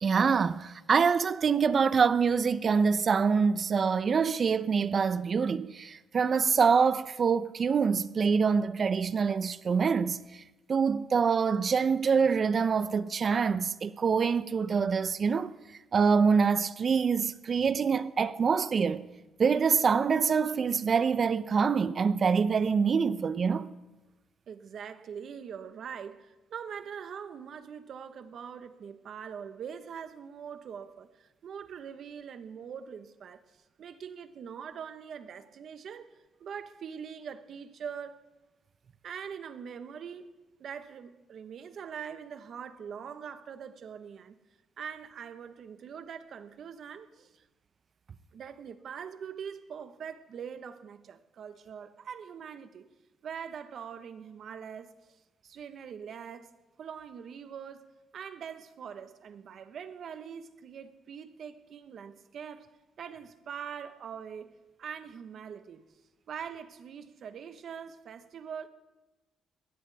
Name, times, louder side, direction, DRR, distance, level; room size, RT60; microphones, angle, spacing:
voice 1, 0.0-10.2 10.7-15.5 15.9-19.1 19.4-23.7, right 5 dB, 45° right, 0.7 m, -25 dB
voice 2, 24.5-33.4 33.8-36.1 36.4-38.2 39.0-40.3 40.6-44.4 44.8-47.4 48.3-52.9 53.2-54.9 55.4-56.5 56.8-57.9 58.1-62.7 63.0-64.5 64.8-65.8 66.3-68.7, right 7 dB, 60° right, 1.2 m, -43 dB
21.0 x 16.5 x 3.6 m
cardioid pair, 90°, 0 cm